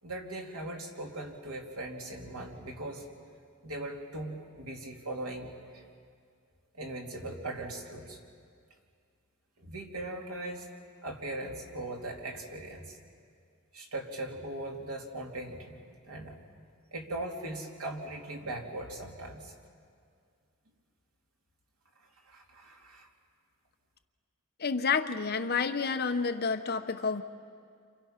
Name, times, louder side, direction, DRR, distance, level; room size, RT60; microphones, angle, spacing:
voice 1, 0.0-3.1 3.6-5.8 6.7-8.2 9.6-10.7 11.0-13.0 13.7-15.8 16.1-16.4 16.9-19.5 22.2-23.1, right 1 dB, 90° right, 0 dB, 3.1 m, -39 dB
voice 2, 24.6-27.2, left 5 dB, 45° left, 8 dB, 0.9 m, -29 dB
29.5 x 27.0 x 5.9 m, 2.2 s
head